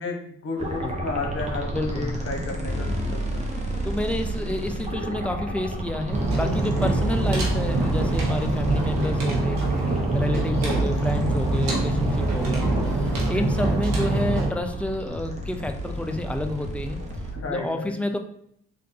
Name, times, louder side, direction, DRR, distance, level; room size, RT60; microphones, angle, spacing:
voice 1, 0.0-3.5 17.3-17.9, left 3 dB, 40° left, 2 dB, 1.0 m, -32 dB
sound 1, 0.6-17.3, equal, 20° right, 1.0 m, -33 dB
sound 2, 1.1-17.5, equal, 40° right, 1.2 m, -37 dB
voice 2, 1.7-2.1 3.8-9.6 10.1-17.0 17.5-18.2, left 1 dB, 5° left, 6 dB, 0.4 m, -29 dB
sound 3, 6.1-14.5, right 2 dB, 75° right, 1.0 m, -24 dB
3.6 x 2.6 x 2.7 m, 0.71 s
hypercardioid pair, 45°, 34 cm